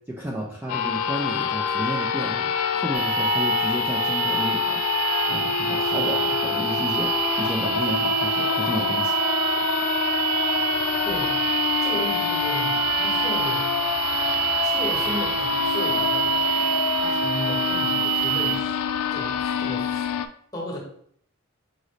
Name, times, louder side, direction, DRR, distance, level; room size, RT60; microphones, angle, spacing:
voice 1, 0.1-2.5 2.8-4.8 5.3-7.1 7.4-9.2, equal, 10° right, -4 dB, 0.4 m, -31 dB
sound 1, 0.7-20.3, left 7 dB, 85° left, 0.3 m, -26 dB
sound 2, 2.9-18.6, right 17 dB, 85° right, 0.4 m, -27 dB
voice 2, 11.8-13.7 14.6-16.3 16.9-18.7 19.1-20.0 20.5-20.8, left 1 dB, 15° left, -3 dB, 1.0 m, -34 dB
4.9 x 2.6 x 3.1 m, 0.64 s
head